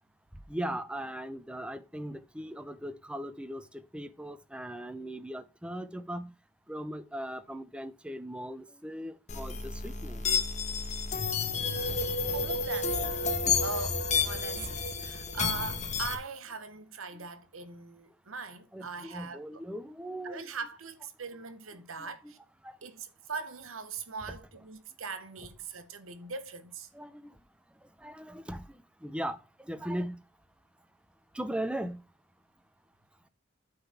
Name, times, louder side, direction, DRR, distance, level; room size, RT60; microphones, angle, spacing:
voice 1, 0.5-3.7 3.9-6.3 6.7-10.2 15.0-15.1 17.1-17.2 18.7-20.4 22.0-22.3 22.6-22.8 26.9-27.3 28.0-30.2 31.3-32.0, right 1 dB, 5° right, 0.6 m, -39 dB
sound 1, 9.3-16.1, left 4 dB, 35° left, 1.2 m, -30 dB
voice 2, 12.3-19.6 20.2-22.4 22.8-26.9, right 4 dB, 85° right, 1.1 m, -41 dB
8.8 x 3.9 x 5.8 m
head